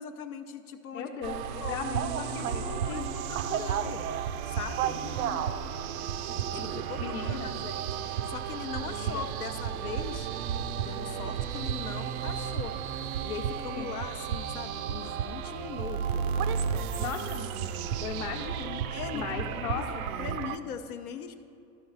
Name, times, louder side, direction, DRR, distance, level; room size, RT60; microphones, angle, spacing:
voice 1, 0.0-1.1 1.6-1.8 2.2-4.0 4.5-5.0 6.5-10.3 10.8-12.7 13.2-16.3 18.9-19.9 20.2-21.4, left 7 dB, 85° left, 7 dB, 0.8 m, -40 dB
voice 2, 0.9-3.1 5.0-5.5 7.0-7.6 9.1-9.2 13.7-13.9 17.0-17.7 18.0-20.0, left 7 dB, 55° left, -4 dB, 1.0 m, -37 dB
sound 1, 1.2-20.6, right 8 dB, 80° right, 0.6 m, -33 dB
13.0 x 5.1 x 4.0 m, 2.6 s
hypercardioid pair, 110°, 42 cm